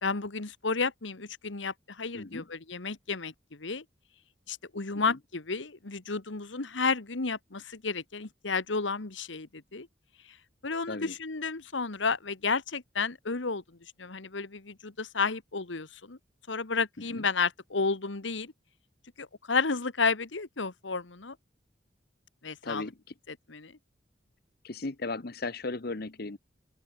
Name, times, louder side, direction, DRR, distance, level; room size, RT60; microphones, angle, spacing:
voice 1, 0.0-3.8 4.5-9.9 10.6-13.6 14.0-16.2 16.5-18.5 19.2-21.3 22.4-22.8 23.5-23.7, left 4 dB, 85° left, 1.5 m, -32 dB
voice 2, 2.1-2.5 4.9-5.2 10.9-11.1 17.0-17.2 22.6-23.1 24.6-26.4, left 3 dB, 55° left, 1.0 m, -36 dB
open air
head